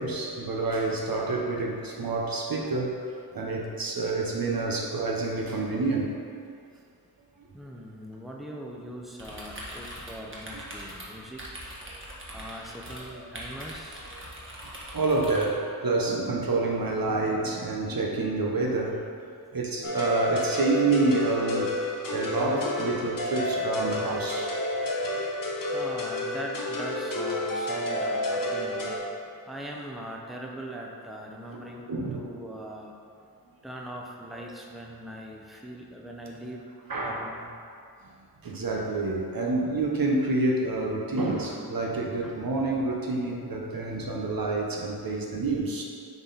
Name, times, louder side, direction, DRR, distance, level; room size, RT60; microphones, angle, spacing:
voice 1, 0.0-6.2 14.6-19.1 19.5-21.8 22.1-24.5 25.1-25.2 31.5-31.6 31.9-32.3 36.9-37.3 38.4-45.8, right 3 dB, 65° right, -1 dB, 1.0 m, -28 dB
voice 2, 7.5-11.6 12.3-14.1 25.7-29.0 29.5-33.0 33.6-36.7 37.0-37.5 41.9-42.5 43.7-44.3, right 1 dB, ahead, -1 dB, 0.8 m, -41 dB
sound 1, 9.2-15.4, equal, 30° right, 1.5 m, -42 dB
sound 2, 19.8-29.0, left 1 dB, 60° left, 1.0 m, -30 dB
sound 3, 22.4-23.3 24.6-25.2 26.9-27.5 28.3-29.0, left 1 dB, 35° left, 1.4 m, -44 dB
7.0 x 4.2 x 4.1 m, 2.3 s
wide cardioid pair, 60°, 38 cm